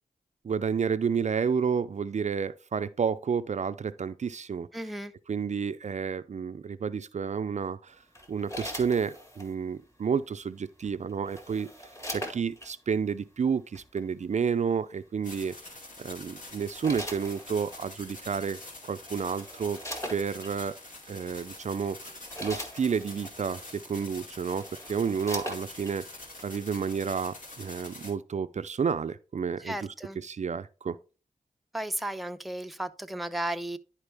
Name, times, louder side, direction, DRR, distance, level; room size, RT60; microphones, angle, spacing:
voice 1, 0.4-4.7 5.3-8.0 8.3-11.7 12.1-15.5 16.0-19.8 20.1-20.8 21.1-22.1 22.4-26.0 26.4-31.0, right 6 dB, 55° right, 0.4 m, -30 dB
voice 2, 4.7-5.1 29.6-30.2 31.7-33.8, right 1 dB, ahead, 0.5 m, -34 dB
sound 1, 8.1-9.5 10.8-12.7 13.7-14.0 15.7-16.0 16.5-17.9 18.7-18.8 19.1-20.5 21.3-21.4 21.9-23.4 24.1-24.2 24.4-26.0 26.4-26.5, equal, 20° left, 1.8 m, -40 dB
sound 2, 15.2-28.1, left 2 dB, 65° left, 2.5 m, -46 dB
10.5 x 4.5 x 3.4 m
cardioid pair, 65°, 15 cm